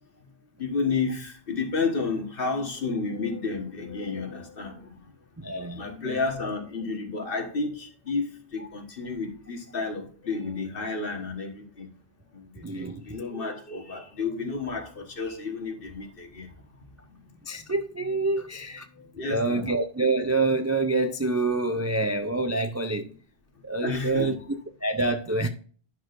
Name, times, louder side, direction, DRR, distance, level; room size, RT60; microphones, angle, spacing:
voice 1, 0.6-5.1 5.6-11.9 12.3-16.5 19.0-19.7 22.5-22.6 22.9-23.1 23.8-24.4, left 4 dB, 60° left, 1.6 m, -31 dB
voice 2, 5.4-5.9 12.6-13.0 17.4-18.9 19.3-23.1 23.6-25.5, right 2 dB, 25° right, 0.4 m, -27 dB
10.0 x 6.1 x 2.6 m
omnidirectional pair, 1.1 m